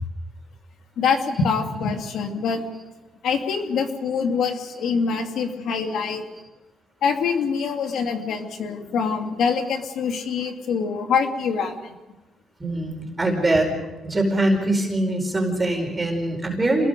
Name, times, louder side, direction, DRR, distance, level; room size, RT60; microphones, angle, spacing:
voice 1, 1.0-2.7 3.2-6.2 7.0-12.0, left 5 dB, 75° left, 4 dB, 2.6 m, -24 dB
voice 2, 12.6-13.7 14.0-16.9, right 1 dB, 20° right, 2 dB, 4.8 m, -22 dB
27.5 x 21.0 x 5.3 m, 1.1 s
cardioid pair, 90°, 0 cm